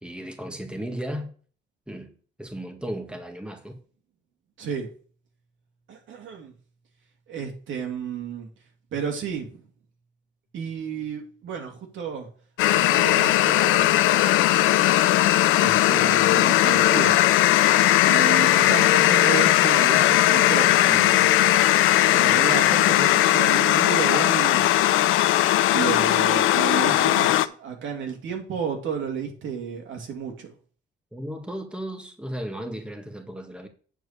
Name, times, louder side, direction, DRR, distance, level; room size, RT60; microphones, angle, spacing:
voice 1, 0.0-1.3 1.9-2.1 2.4-3.8 31.1-33.7, equal, 5° right, 1.7 m, -35 dB
voice 2, 4.6-4.9 5.9-6.5 7.3-8.5 8.9-9.6 10.5-12.3 12.7-14.0 15.6-17.3 18.0-21.5 22.1-24.6 25.7-30.5, right 7 dB, 75° right, 2.8 m, -32 dB
sound 1, 12.6-27.5, left 14 dB, 90° left, 0.6 m, -19 dB
9.1 x 4.5 x 6.8 m
cardioid pair, 90°, 20 cm